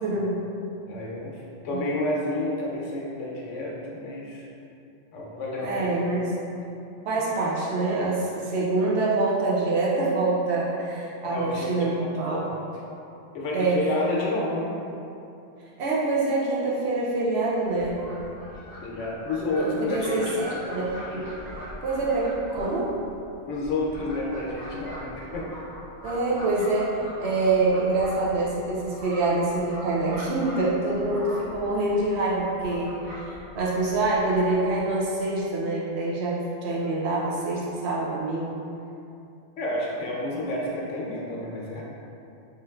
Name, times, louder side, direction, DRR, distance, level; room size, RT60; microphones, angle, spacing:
voice 1, 0.0-0.4 1.7-1.8 5.6-6.3 7.0-12.4 13.5-13.8 15.8-18.0 19.5-21.3 21.8-22.9 26.0-38.5, right 2 dB, 65° right, -6 dB, 0.8 m, -26 dB
voice 2, 0.9-4.5 5.1-5.9 11.2-12.5 13.3-14.8 18.8-20.5 23.5-25.5 39.6-41.8, left 2 dB, 75° left, -4 dB, 0.9 m, -30 dB
Fowl, 17.7-35.0, equal, 20° right, 0.8 m, -42 dB
3.1 x 3.1 x 2.3 m, 2.8 s
omnidirectional pair, 1.3 m